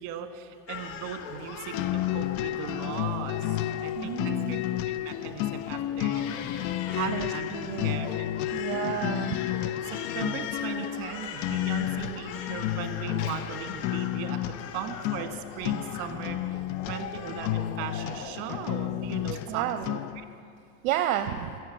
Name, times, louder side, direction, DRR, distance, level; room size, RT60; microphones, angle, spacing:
voice 1, 0.0-1.7 2.1-3.4 3.8-6.4 6.9-7.5 7.8-8.3 8.6-8.9 9.6-14.4 14.7-16.4 16.8-20.0, right 9 dB, 65° right, 7 dB, 1.4 m, -38 dB
Crying sobbing, 0.7-19.5, left 7 dB, 80° left, 1.2 m, -41 dB
sound 1, 1.7-20.3, left 13 dB, 45° left, 0.4 m, -32 dB
voice 2, 4.0-4.6 7.1-8.1 8.5-9.4 19.5-19.9 20.8-21.6, right 12 dB, 80° right, 7 dB, 0.7 m, -31 dB
14.5 x 7.2 x 8.9 m, 2.3 s
supercardioid pair, 125°, 41 cm